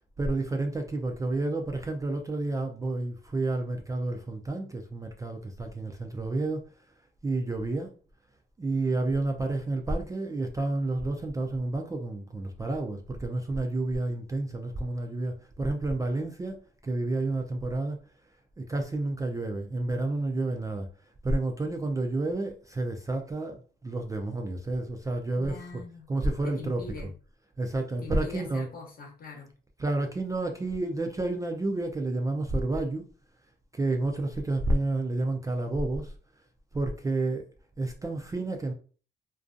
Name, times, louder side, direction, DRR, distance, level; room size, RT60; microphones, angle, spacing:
voice 1, 0.2-6.6 7.2-8.0 8.6-18.0 18.6-20.9 21.2-25.7 26.1-26.8 27.6-28.7 29.8-33.0 33.7-36.1 36.7-37.5 37.8-38.7, right 2 dB, 15° right, 0.3 m, -30 dB
voice 2, 25.4-26.1 26.4-27.1 28.0-29.5, left 4 dB, 45° left, 0.9 m, -43 dB
2.5 x 2.2 x 2.5 m
cardioid pair, 90°, 20 cm